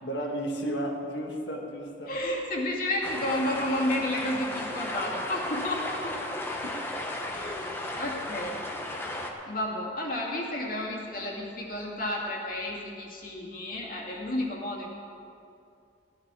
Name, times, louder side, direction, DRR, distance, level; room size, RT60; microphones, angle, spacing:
voice 1, 0.0-2.2 6.6-6.7, right 1 dB, 85° left, 0 dB, 1.5 m, -33 dB
voice 2, 2.1-6.2 7.3-7.7 8.0-8.6 9.5-14.9, left 1 dB, 50° left, -2 dB, 2.3 m, -31 dB
sound 1, 3.0-9.3, left 1 dB, 15° left, 1.0 m, -35 dB
15.5 x 10.5 x 4.9 m, 2.5 s
head